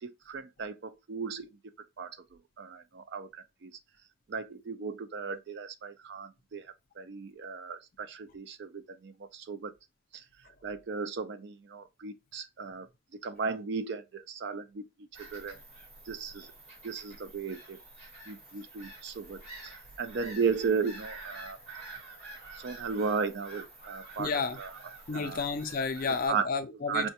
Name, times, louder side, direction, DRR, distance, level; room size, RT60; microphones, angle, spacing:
voice 1, 0.0-1.5 2.0-2.2 2.6-3.7 4.3-9.7 10.1-10.2 10.6-12.9 13.2-14.9 15.2-15.6 16.1-16.5 16.8-17.8 18.3-21.6 22.3-24.3 24.6-24.7 25.1-25.4 26.3-26.5 26.9-27.1, right 5 dB, 55° right, 0.4 m, -35 dB
Bird vocalization bird call bird song / Gull seagull, 15.1-26.3, right 2 dB, 30° right, 2.3 m, -48 dB
voice 2, 24.2-24.6 25.1-27.1, left 4 dB, 45° left, 0.4 m, -31 dB
5.4 x 2.2 x 2.8 m
head